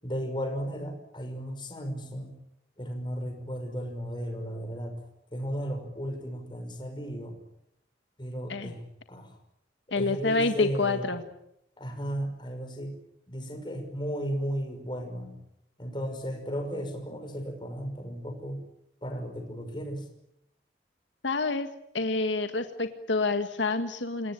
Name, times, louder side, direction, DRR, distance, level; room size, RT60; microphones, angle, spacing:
voice 1, 0.0-2.4 2.8-5.0 5.3-7.4 8.2-8.8 9.1-9.3 10.0-11.1 11.8-12.9 13.3-15.4 15.8-18.6 19.0-20.1, equal, 25° left, 5 dB, 5.9 m, -35 dB
voice 2, 9.9-11.2 21.2-21.7 21.9-24.3, left 3 dB, 85° left, 7 dB, 1.8 m, -28 dB
28.0 x 18.5 x 9.3 m, 0.80 s
head